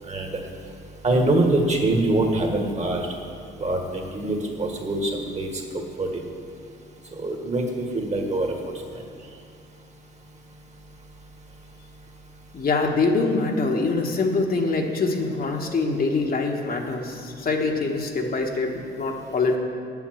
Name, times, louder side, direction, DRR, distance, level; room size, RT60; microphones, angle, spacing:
voice 1, 0.1-0.4 1.0-3.1 3.6-6.2 7.1-8.5, right 2 dB, 35° right, 2 dB, 1.7 m, -24 dB
voice 2, 12.5-19.6, left 3 dB, 50° left, 2 dB, 1.3 m, -24 dB
8.4 x 7.2 x 7.7 m, 2.3 s
cardioid pair, 90°, 20 cm